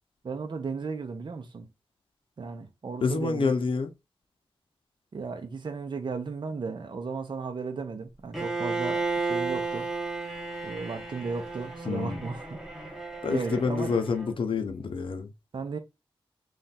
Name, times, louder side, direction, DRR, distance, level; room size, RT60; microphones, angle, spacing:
voice 1, 0.2-1.7 2.4-3.5 5.1-9.9 10.6-13.0 13.3-14.0 15.5-15.8, right 4 dB, 55° right, 0.7 m, -35 dB
voice 2, 3.0-3.9 11.9-12.2 13.2-15.3, left 4 dB, 65° left, 0.7 m, -28 dB
Bowed string instrument, 8.3-14.3, right 3 dB, ahead, 1.1 m, -33 dB
3.3 x 2.5 x 4.1 m
wide cardioid pair, 90°, 9 cm